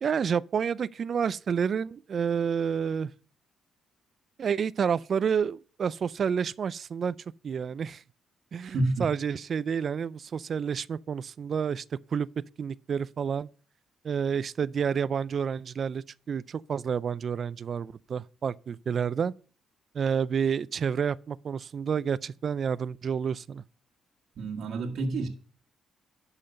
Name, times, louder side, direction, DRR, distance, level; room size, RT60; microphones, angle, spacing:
voice 1, 0.0-3.1 4.4-7.2 7.4-8.0 8.5-11.8 12.1-12.3 12.6-13.5 14.0-19.3 19.9-23.6, right 7 dB, 50° right, 0.3 m, -29 dB
voice 2, 8.6-9.0 24.4-25.3, right 2 dB, 65° right, 1.5 m, -29 dB
12.0 x 5.7 x 5.3 m
cardioid pair, 90°, 0 cm